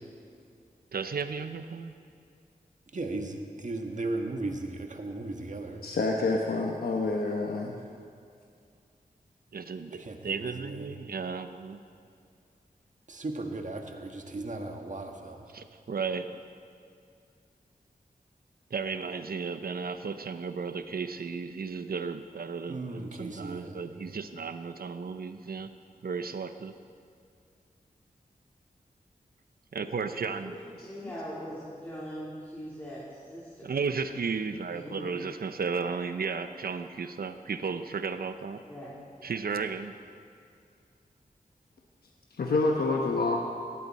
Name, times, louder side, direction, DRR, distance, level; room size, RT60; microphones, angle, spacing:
voice 1, 0.9-2.0 9.5-11.8 15.5-16.4 18.7-25.7 26.0-26.8 29.7-30.6 33.6-38.6 39.2-39.9, right 5 dB, 75° right, 10 dB, 0.8 m, -34 dB
voice 2, 2.9-5.8 9.9-10.9 13.1-15.5 22.7-24.2, right 2 dB, 55° right, 3 dB, 1.6 m, -37 dB
voice 3, 5.8-7.7 42.4-43.4, left 3 dB, 85° left, 0 dB, 1.1 m, -27 dB
voice 4, 30.1-33.7 34.7-35.1 38.7-39.0, equal, 15° left, -8 dB, 3.5 m, -41 dB
17.5 x 14.0 x 4.2 m, 2.3 s
wide cardioid pair, 65°, 16 cm